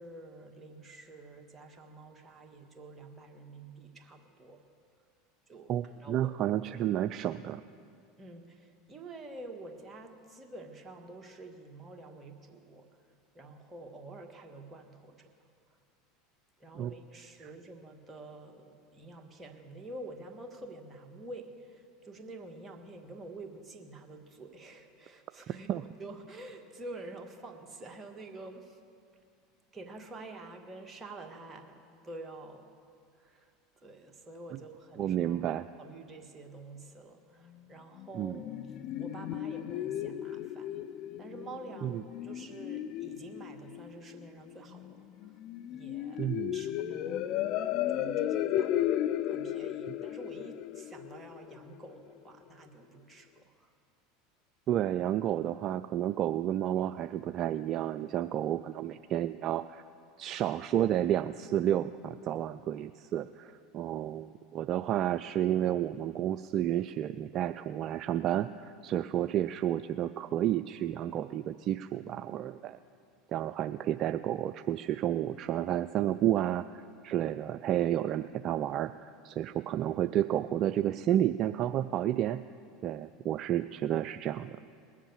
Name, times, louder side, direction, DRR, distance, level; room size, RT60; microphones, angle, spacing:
voice 1, 0.0-4.6 5.5-5.7 6.0-6.3 8.2-12.9 13.3-15.3 16.6-28.8 29.7-32.7 33.2-35.4 35.8-38.5 39.0-40.8 41.2-45.3 45.7-47.2 47.9-48.9 49.2-53.7 68.9-69.1, right 2 dB, 25° right, 3 dB, 1.7 m, -48 dB
voice 2, 5.7-7.6 16.8-16.9 25.7-25.8 35.0-35.7 38.1-38.4 41.8-42.0 46.2-46.6 54.7-59.8 60.2-72.8 73.3-82.4 82.8-84.6, right 11 dB, 50° right, 11 dB, 0.3 m, -31 dB
sound 1, 38.0-51.9, left 11 dB, 55° left, 0.5 m, -35 dB
20.0 x 7.4 x 7.1 m, 2.3 s
hypercardioid pair, 85°, 0 cm